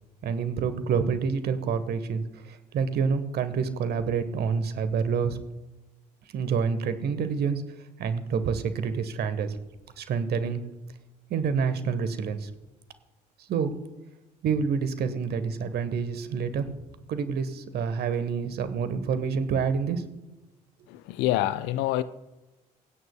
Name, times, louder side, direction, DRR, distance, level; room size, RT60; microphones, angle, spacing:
voice 1, 0.2-5.4 6.3-7.6 8.0-9.6 10.0-10.6 11.3-12.5 13.5-13.8 14.4-16.7 17.1-20.0, right 6 dB, 50° right, 1.3 m, -28 dB
voice 2, 20.9-22.0, left 14 dB, 60° left, 0.5 m, -26 dB
26.5 x 9.3 x 2.3 m
figure-of-eight pair, 45°, 21 cm